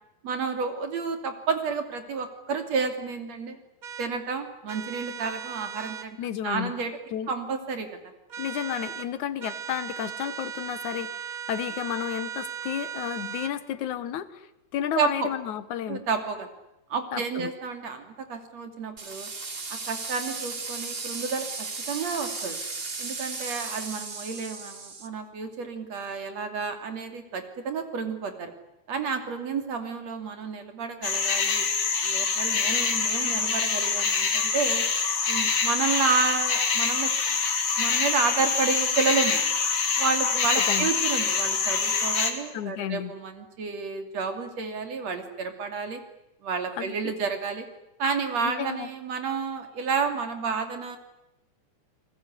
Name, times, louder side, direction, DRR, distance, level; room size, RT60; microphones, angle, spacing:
voice 1, 0.2-3.6 4.0-6.2 6.4-6.9 7.3-7.9 15.0-15.3 15.9-16.5 16.9-19.3 19.7-22.6 23.0-28.5 28.9-31.7 32.0-34.8 35.3-37.1 37.8-39.4 40.0-46.0 46.4-47.7 48.0-51.0, right 5 dB, 65° right, 7 dB, 4.0 m, -30 dB
sound 1, 3.8-4.1 4.7-6.1 8.3-9.1 9.4-13.5, right 9 dB, 50° right, 1.1 m, -37 dB
voice 2, 6.2-6.7 7.1-7.3 8.4-16.0 17.1-17.5 40.6-40.9 42.5-43.1 46.8-47.1 48.4-48.9, left 10 dB, 85° left, 14 dB, 2.8 m, -32 dB
sound 2, 19.0-25.1, right 3 dB, 25° right, 1.6 m, -35 dB
sound 3, 31.0-42.3, left 5 dB, 60° left, 3.9 m, -25 dB
30.0 x 20.5 x 9.8 m, 0.89 s
omnidirectional pair, 3.3 m